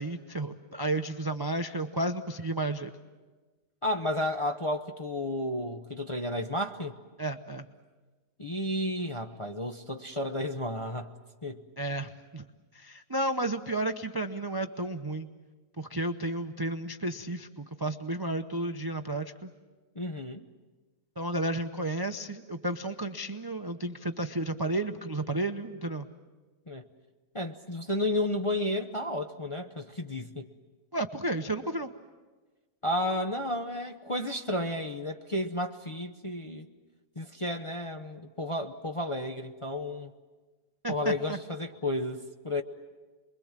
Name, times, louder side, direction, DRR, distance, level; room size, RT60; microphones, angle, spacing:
voice 1, 0.0-2.9 7.2-7.7 11.8-12.4 12.7-15.3 15.8-19.5 21.2-26.1 30.9-31.9 40.8-41.4, right 2 dB, 25° right, 7 dB, 0.5 m, -32 dB
voice 2, 3.8-7.0 8.4-11.1 11.4-11.6 20.0-20.4 26.7-26.8 27.3-30.5 32.8-36.7 37.2-40.1 40.9-42.6, left 1 dB, 30° left, 4 dB, 0.7 m, -32 dB
28.0 x 22.5 x 7.4 m, 1.3 s
omnidirectional pair, 1.7 m